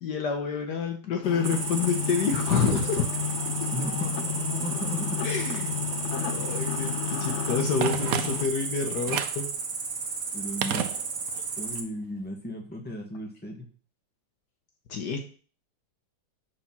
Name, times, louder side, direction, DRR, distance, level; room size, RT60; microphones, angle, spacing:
voice 1, 0.0-3.1 3.6-3.7 5.2-5.8 6.2-9.5 14.9-15.3, left 6 dB, 65° left, 4 dB, 1.5 m, -28 dB
sound 1, 1.2-8.5, left 9 dB, 90° left, 0.6 m, -32 dB
Cricket, 1.4-11.8, right 5 dB, 50° right, 1.3 m, -33 dB
voice 2, 3.7-5.2 10.3-10.9 11.6-13.7, left 1 dB, 5° left, 1 dB, 1.6 m, -35 dB
Telephone, 7.8-8.7 9.1-9.5 10.6-11.5 11.8-11.9, right 9 dB, 65° right, 0.9 m, -31 dB
9.6 x 4.2 x 6.0 m, 0.41 s
omnidirectional pair, 2.1 m